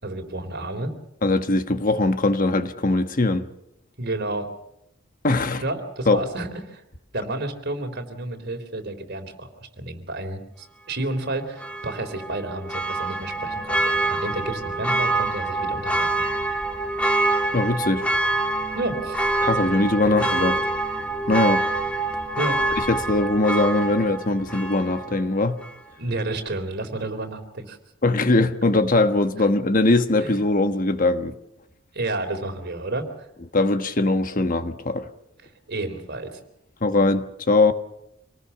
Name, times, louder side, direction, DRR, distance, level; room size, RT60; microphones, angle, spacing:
voice 1, 0.0-0.9 4.0-4.5 5.6-6.8 7.1-9.5 9.8-16.2 18.7-19.3 20.1-20.2 22.4-22.6 26.0-27.8 29.4-29.5 30.2-30.3 31.9-33.0 35.7-36.4, right 2 dB, 50° right, 3.7 m, -31 dB
voice 2, 1.2-3.5 5.2-5.6 6.1-6.2 17.5-18.1 19.4-20.6 21.3-21.6 22.9-25.6 28.0-31.3 33.5-35.1 36.8-37.7, left 2 dB, 40° left, 1.3 m, -21 dB
Church bell, 11.6-25.2 25.6-25.7, right 2 dB, 5° left, 2.2 m, -25 dB
26.0 x 19.0 x 7.0 m
head